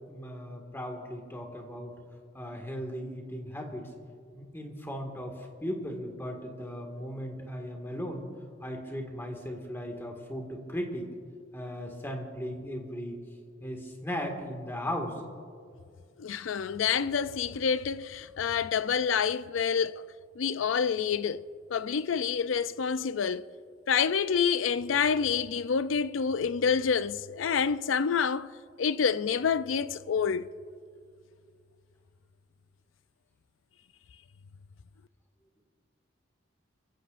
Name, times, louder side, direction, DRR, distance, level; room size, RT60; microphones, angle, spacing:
voice 1, 0.1-2.0 2.3-3.9 4.3-8.3 8.6-11.1 11.5-13.2 13.6-15.2, equal, 10° left, 1.9 m, -37 dB
voice 2, 16.2-20.0 20.4-21.4 21.7-23.4 23.9-28.5 28.8-30.5, left 6 dB, 85° left, 0.4 m, -27 dB
30.0 x 15.5 x 2.5 m
head